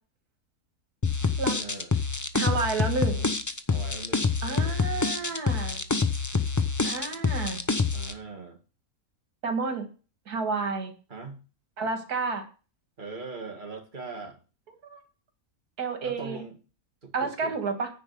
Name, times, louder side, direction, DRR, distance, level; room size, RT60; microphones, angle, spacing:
sound 1, 1.0-8.1, left 4 dB, 30° left, 0.3 m, -26 dB
voice 1, 1.5-1.9 3.7-5.1 7.9-8.6 11.1-11.4 13.0-14.4 16.0-16.6 17.0-17.6, right 4 dB, 30° right, 3 dB, 2.0 m, -41 dB
voice 2, 2.3-3.3 4.4-5.8 6.8-7.6 9.4-9.9 10.3-10.9 11.8-12.4 14.8-15.0 15.8-16.4 17.1-17.9, right 4 dB, 85° right, 5 dB, 2.3 m, -30 dB
9.9 x 4.9 x 6.7 m, 0.34 s
omnidirectional pair, 1.6 m